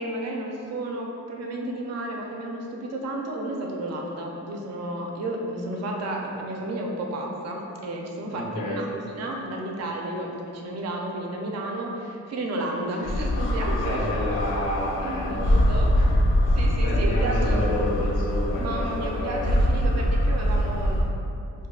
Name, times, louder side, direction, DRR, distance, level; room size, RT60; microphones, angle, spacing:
voice 1, 0.0-8.5 8.8-14.1 15.0-15.9 16.5-17.6 18.6-21.1, right 1 dB, 60° right, 0 dB, 0.5 m, -32 dB
voice 2, 8.3-8.9 13.8-15.6 16.0-16.3 16.7-19.5, left 1 dB, 85° left, -5 dB, 0.8 m, -30 dB
sound 1, 13.0-21.0, equal, 45° left, 0.4 m, -23 dB
2.6 x 2.2 x 3.5 m, 2.7 s
wide cardioid pair, 160°, 30 cm